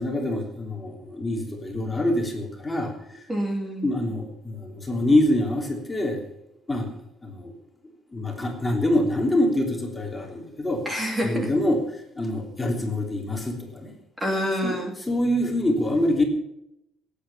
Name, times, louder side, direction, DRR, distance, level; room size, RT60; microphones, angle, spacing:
voice 1, 0.0-3.2 3.8-6.2 6.7-7.0 7.2-7.5 8.1-10.9 11.2-13.9 14.6-14.8 15.1-16.2, left 1 dB, 10° left, 1 dB, 3.2 m, -25 dB
voice 2, 3.3-3.9 10.8-11.5 14.2-14.9, equal, 10° right, 2 dB, 2.8 m, -27 dB
17.0 x 9.2 x 7.3 m, 0.81 s
cardioid pair, 145°, 0 cm